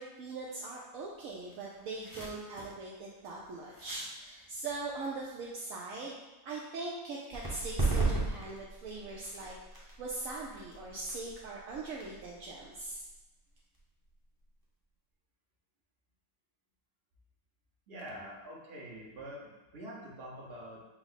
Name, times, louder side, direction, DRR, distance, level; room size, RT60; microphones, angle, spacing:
voice 1, 0.0-6.1 6.4-13.0, right 3 dB, 75° right, -3 dB, 0.9 m, -41 dB
sound 1, 1.0-1.1 1.3-5.6, equal, 20° left, 0.6 m, -52 dB
sound 2, 7.3-14.6, right 3 dB, 15° right, 0.9 m, -36 dB
voice 2, 17.9-20.8, equal, 45° right, -3 dB, 1.1 m, -45 dB
5.7 x 2.0 x 4.0 m, 1.1 s
omnidirectional pair, 1.5 m